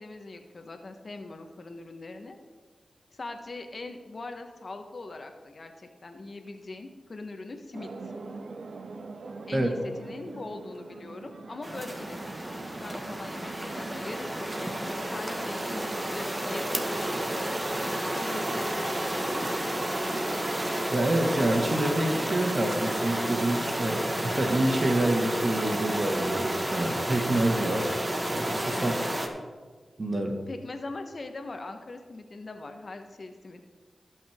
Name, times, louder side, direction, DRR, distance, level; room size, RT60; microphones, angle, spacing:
voice 1, 0.0-2.4 3.1-8.1 9.5-12.2 12.5-17.6 18.1-19.8 28.7-29.0 30.5-33.6, left 2 dB, 55° left, 5 dB, 1.3 m, -41 dB
sound 1, 7.7-22.0, right 3 dB, 70° right, 0.8 m, -43 dB
sound 2, 11.6-29.3, right 1 dB, 30° right, 1.7 m, -31 dB
voice 2, 20.9-27.9 28.3-28.9 30.0-30.4, right 1 dB, 45° right, 3 dB, 1.9 m, -27 dB
18.0 x 6.3 x 3.7 m, 1.5 s
cardioid pair, 40°, 0 cm